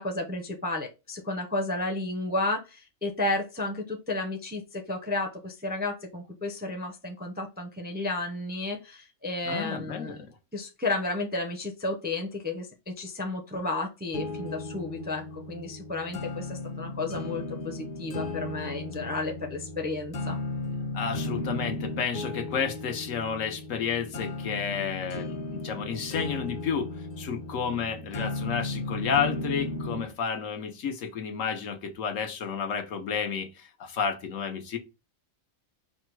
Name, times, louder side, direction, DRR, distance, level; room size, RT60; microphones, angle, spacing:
voice 1, 0.0-20.4, left 2 dB, 15° right, 0.4 m, -32 dB
voice 2, 9.4-10.2 20.9-34.8, left 6 dB, 80° left, 1.2 m, -31 dB
sound 1, 14.1-30.1, left 2 dB, 45° left, 0.8 m, -35 dB
4.9 x 2.2 x 4.6 m
omnidirectional pair, 1.3 m